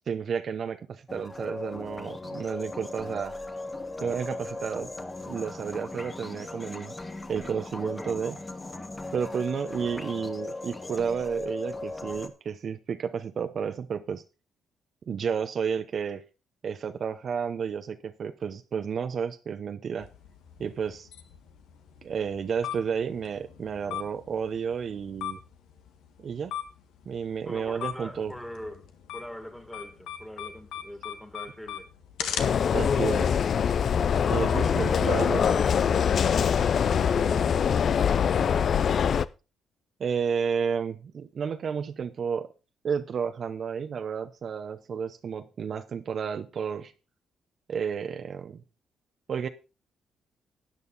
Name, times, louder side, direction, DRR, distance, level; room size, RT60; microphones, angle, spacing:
voice 1, 0.1-3.3 4.0-4.9 5.3-6.9 7.3-8.3 9.1-14.2 15.1-16.2 16.6-20.1 20.6-21.1 22.0-25.4 26.2-26.5 27.1-28.3 32.7-33.4 34.3-35.4 40.0-42.5 42.8-46.9 47.7-48.6 49.3-49.5, right 6 dB, 55° right, 0.8 m, -31 dB
sound 1, 1.1-12.3, left 2 dB, 20° left, 1.5 m, -38 dB
voice 2, 5.9-6.3 7.8-8.1 9.6-9.9 27.4-28.9 29.1-31.9 34.5-39.1, equal, 5° left, 2.3 m, -42 dB
sound 2, 20.0-33.9, left 9 dB, 85° left, 1.5 m, -41 dB
sound 3, 32.4-39.3, left 7 dB, 55° left, 0.5 m, -23 dB
12.5 x 9.2 x 4.1 m
cardioid pair, 90°, 0 cm